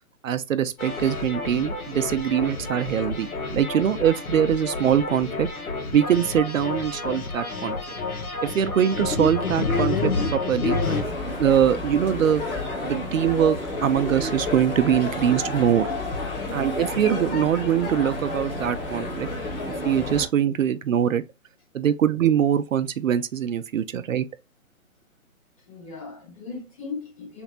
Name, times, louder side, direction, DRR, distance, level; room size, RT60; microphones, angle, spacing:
voice 1, 0.2-5.5 5.9-7.8 8.4-10.8 11.3-12.4 12.8-15.9 16.5-19.3 19.8-21.2 21.7-24.3, right 9 dB, 65° right, 0.5 m, -23 dB
sound 1, 0.8-11.0, left 3 dB, 80° left, 1.3 m, -29 dB
sound 2, 10.8-20.3, left 2 dB, 40° left, 1.4 m, -30 dB
voice 2, 25.7-27.4, left 4 dB, 25° left, 0.8 m, -38 dB
3.4 x 3.0 x 2.4 m
hypercardioid pair, 145°, 43 cm